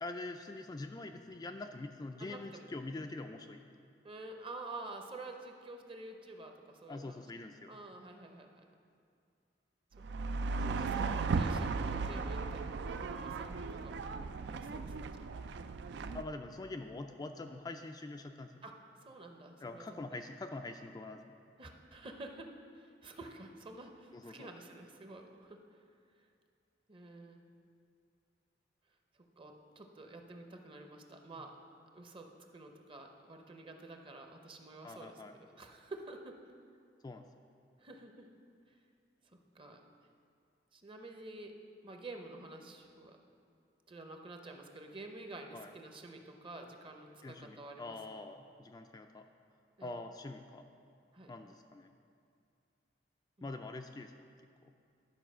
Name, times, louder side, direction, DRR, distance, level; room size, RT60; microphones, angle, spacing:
voice 1, 0.0-3.6 6.9-7.7 10.6-11.2 16.1-18.6 19.6-21.2 24.1-24.5 34.8-35.3 37.0-37.2 45.5-45.7 47.2-49.3 49.8-50.7 51.3-51.9 53.4-54.1 54.6-54.7, left 2 dB, 20° left, 5 dB, 0.3 m, -44 dB
voice 2, 2.2-2.7 4.0-7.2 7.7-8.7 10.0-10.4 10.8-15.1 18.6-20.2 21.6-25.6 26.9-27.4 29.4-31.6 31.9-36.4 37.8-38.3 39.5-39.8 40.7-41.5 41.8-43.2 43.9-48.0 49.8-49.9 51.1-51.3 53.4-53.5, right 2 dB, 30° right, 4 dB, 0.7 m, -49 dB
sound 1, 10.0-16.2, right 4 dB, 70° right, 0.4 m, -36 dB
11.5 x 4.8 x 6.1 m, 2.4 s
head